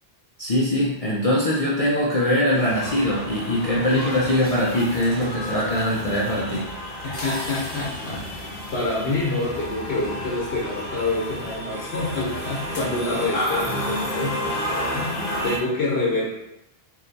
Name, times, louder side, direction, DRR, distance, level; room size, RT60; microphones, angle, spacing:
voice 1, 0.4-6.7, left 1 dB, 40° left, -5 dB, 0.6 m, -22 dB
sound 1, 2.6-15.6, left 1 dB, 60° left, 1.0 m, -31 dB
voice 2, 3.7-4.1 5.2-5.3 7.0-14.6 14.9-16.3, left 2 dB, 85° left, -4 dB, 1.1 m, -27 dB
3.2 x 2.7 x 3.9 m, 0.92 s
omnidirectional pair, 1.1 m